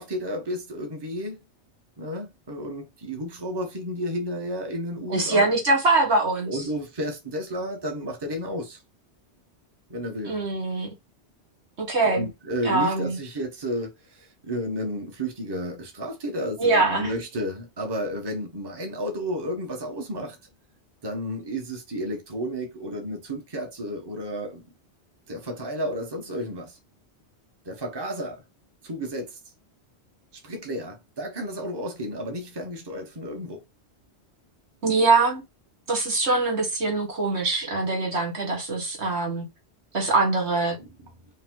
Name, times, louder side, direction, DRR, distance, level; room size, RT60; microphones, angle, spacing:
voice 1, 0.0-1.4 2.0-5.6 6.5-8.8 9.9-10.4 12.0-20.4 21.0-24.6 25.3-26.8 27.6-28.4 28.8-29.4 30.3-33.6 40.8-40.9, equal, 25° right, 1.0 m, -32 dB
voice 2, 5.1-6.5 10.3-10.9 11.8-12.3 12.6-13.2 16.6-17.1 34.8-35.4 35.9-39.5 39.9-40.8, right 3 dB, 75° right, 2.0 m, -23 dB
5.4 x 2.2 x 3.7 m
omnidirectional pair, 1.1 m